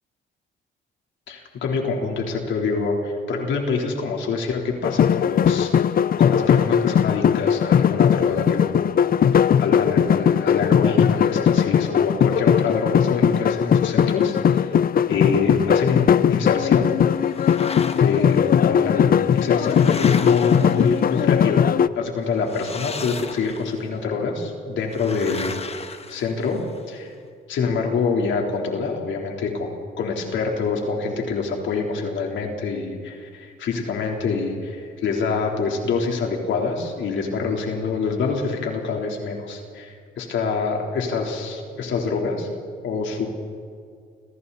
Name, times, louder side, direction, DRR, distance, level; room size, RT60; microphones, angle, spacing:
voice 1, 1.3-5.7 6.2-14.8 15.1-16.9 17.9-21.7 21.9-26.6 26.9-27.1 27.5-29.7 30.0-42.5 42.8-43.3, left 4 dB, 70° left, 1 dB, 3.8 m, -26 dB
sound 1, 4.8-21.9, left 8 dB, 50° left, 0.6 m, -19 dB
sound 2, 17.1-18.4 19.2-21.4 22.4-23.9 24.9-26.8, left 4 dB, 30° left, 1.4 m, -36 dB
30.0 x 27.0 x 4.2 m, 2.2 s
cardioid pair, 90°, 20 cm